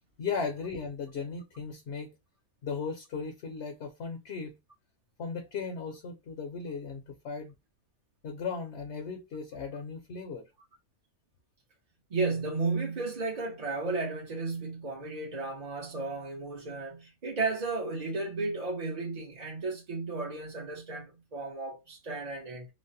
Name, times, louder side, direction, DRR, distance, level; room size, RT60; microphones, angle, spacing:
voice 1, 0.2-2.2 2.6-4.6 5.2-7.5 8.2-10.4, left 5 dB, 60° left, 0.8 m, -36 dB
voice 2, 12.1-22.7, right 3 dB, 40° right, 0.6 m, -34 dB
3.0 x 2.0 x 2.6 m
omnidirectional pair, 1.5 m